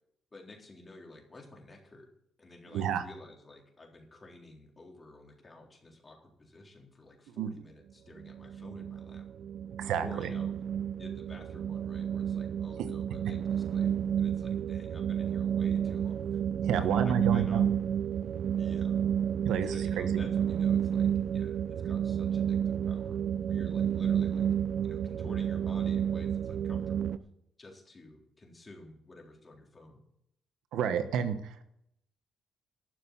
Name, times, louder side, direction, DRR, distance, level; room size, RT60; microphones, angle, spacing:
voice 1, 0.3-2.1 2.4-9.2 10.0-10.5 11.0-13.9 14.2-16.4 16.8-17.7 18.6-19.0 19.5-23.2 23.5-24.5 24.8-27.2 27.6-30.0, left 2 dB, 25° left, 0 dB, 3.9 m, -51 dB
voice 2, 2.7-3.0 7.4-7.5 9.8-10.3 16.6-17.7 19.4-20.2 30.7-31.6, right 8 dB, 85° right, 9 dB, 1.1 m, -30 dB
sound 1, 8.2-27.2, right 9 dB, 65° right, 0.6 m, -31 dB
12.0 x 7.1 x 8.3 m, 0.75 s
cardioid pair, 90°, 0 cm